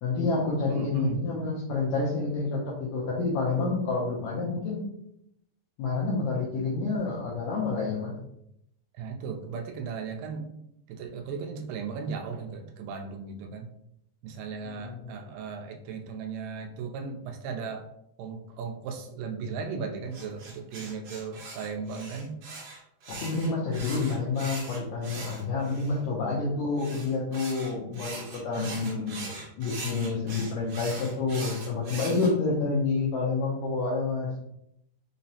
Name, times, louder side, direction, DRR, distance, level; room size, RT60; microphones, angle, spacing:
voice 1, 0.0-4.8 5.8-8.1 14.8-15.1 23.1-34.3, left 3 dB, 85° left, -5 dB, 1.6 m, -29 dB
voice 2, 0.7-1.2 8.9-10.5 10.9-13.7 14.2-17.9 18.2-22.4 28.6-29.0, right 5 dB, 85° right, 4 dB, 2.2 m, -36 dB
sound 1, 20.1-26.0 26.8-32.3, right 3 dB, 70° right, 1.4 m, -41 dB
5.4 x 2.0 x 2.7 m, 0.77 s
omnidirectional pair, 3.9 m